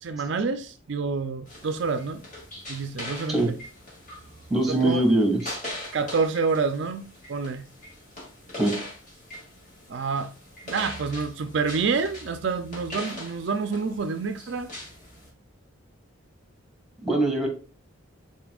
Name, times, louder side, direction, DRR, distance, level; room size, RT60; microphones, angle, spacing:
voice 1, 0.0-2.2 2.7-3.6 4.7-5.1 5.9-7.7 9.9-10.3 10.7-14.7, right 4 dB, 60° right, 0.4 m, -28 dB
sound 1, 1.5-15.3, left 1 dB, 35° left, 2.2 m, -41 dB
voice 2, 4.5-5.6 8.6-8.7 17.0-17.5, right 1 dB, ahead, 1.9 m, -22 dB
9.3 x 4.3 x 2.4 m
head